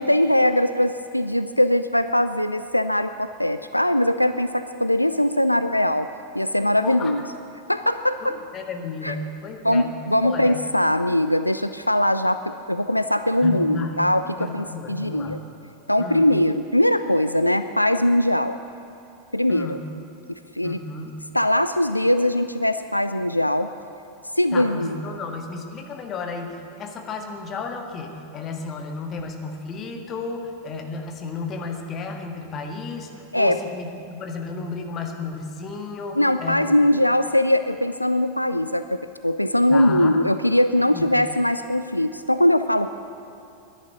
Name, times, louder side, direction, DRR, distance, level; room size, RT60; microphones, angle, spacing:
voice 1, 0.0-6.1 6.3-7.2 7.7-8.4 9.0-9.1 9.6-14.2 14.5-15.4 15.9-18.6 19.3-19.8 20.3-20.8 21.3-23.7 24.4-24.9 33.3-33.6 36.2-43.0, left 1 dB, 90° left, 11 dB, 0.3 m, -21 dB
voice 2, 8.2-10.0 10.2-10.6 13.4-14.1 14.4-15.4 16.0-16.3 19.5-19.9 20.6-21.2 24.5-37.0 39.7-40.2 40.9-41.2, left 4 dB, 30° left, 4 dB, 1.7 m, -33 dB
11.5 x 10.5 x 9.2 m, 2.7 s
figure-of-eight pair, 90°, 0 cm